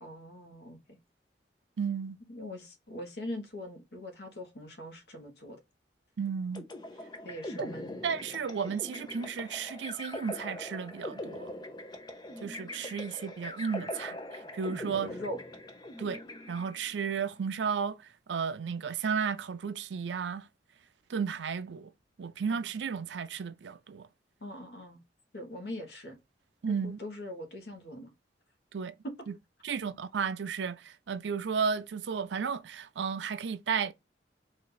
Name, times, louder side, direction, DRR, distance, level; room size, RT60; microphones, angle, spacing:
voice 1, 0.0-1.0 2.3-5.6 7.2-8.0 15.0-15.4 22.5-22.6 24.4-25.0 25.3-26.2 26.7-28.1 29.0-29.1, left 1 dB, 65° left, 1.2 m, -42 dB
voice 2, 1.8-2.2 6.2-6.6 7.6-7.7 8.0-11.5 12.4-15.1 16.0-16.2 16.5-18.0 18.3-20.5 21.1-21.9 22.2-24.1 26.6-27.0 28.7-28.9 29.3-29.4 29.6-33.9, right 6 dB, 85° right, 0.4 m, -33 dB
sound 1, 6.5-17.0, left 1 dB, 25° left, 0.7 m, -42 dB
4.3 x 2.6 x 3.9 m
head